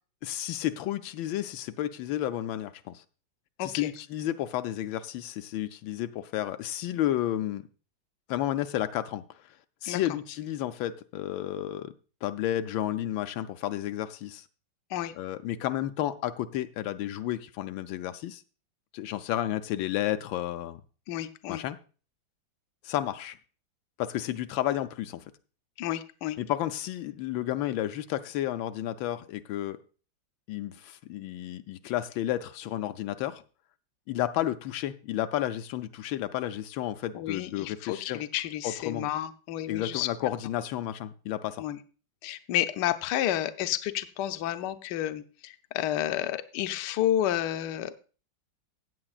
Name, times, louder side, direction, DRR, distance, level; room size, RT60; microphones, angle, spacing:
voice 1, 0.2-3.0 3.6-7.7 8.3-9.2 9.8-11.9 12.2-14.4 15.1-18.4 18.9-20.8 21.5-21.8 22.8-23.4 24.0-25.2 26.4-29.8 30.5-33.4 34.1-38.2 38.6-39.1 39.7-41.6, left 13 dB, 90° left, 1.4 m, -32 dB
voice 2, 3.6-3.9 9.9-10.0 14.9-15.1 21.1-21.6 25.8-26.4 37.1-40.1 41.6-41.8 42.2-48.1, left 12 dB, 70° left, 1.2 m, -31 dB
16.0 x 8.5 x 2.4 m
omnidirectional pair, 2.1 m